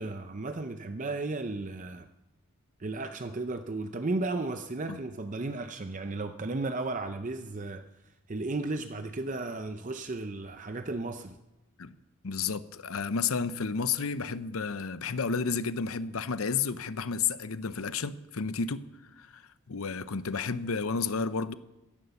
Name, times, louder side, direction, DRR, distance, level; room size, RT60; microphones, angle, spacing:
voice 1, 0.0-2.1 2.8-7.8 8.3-11.4, right 2 dB, 35° right, 0.5 m, -34 dB
voice 2, 12.2-18.8 19.2-19.4 19.7-21.5, left 5 dB, 75° left, 0.7 m, -31 dB
16.0 x 11.0 x 7.0 m
head